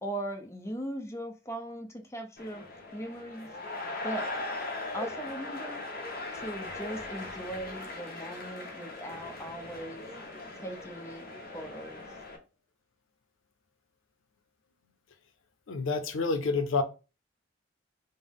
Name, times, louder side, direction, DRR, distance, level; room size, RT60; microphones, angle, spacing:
voice 1, 0.0-2.6 2.9-3.5 4.0-4.3 4.9-5.8 6.3-10.0 10.6-11.3 11.5-12.1, right 1 dB, 15° left, 0.6 m, -39 dB
sound 1, 2.4-12.4, left 2 dB, 50° left, 0.9 m, -39 dB
voice 2, 15.7-16.8, left 4 dB, 90° left, 0.6 m, -28 dB
5.3 x 2.0 x 3.6 m
head